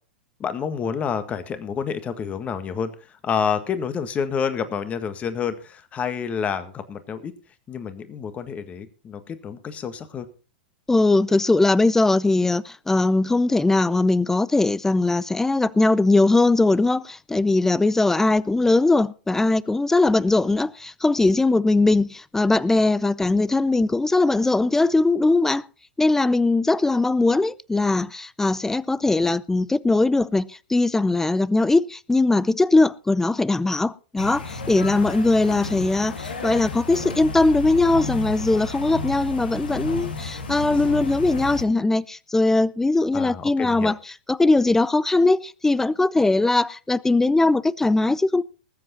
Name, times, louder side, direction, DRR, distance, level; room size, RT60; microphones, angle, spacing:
voice 1, 0.4-7.3 7.7-10.3 43.1-43.9, left 7 dB, 25° left, 1.7 m, -28 dB
voice 2, 10.9-25.6 26.0-44.0 44.3-48.4, left 2 dB, 10° left, 0.5 m, -20 dB
sound 1, 34.2-41.6, left 3 dB, 75° left, 2.5 m, -32 dB
20.0 x 7.9 x 4.3 m
hypercardioid pair, 100°, 5 cm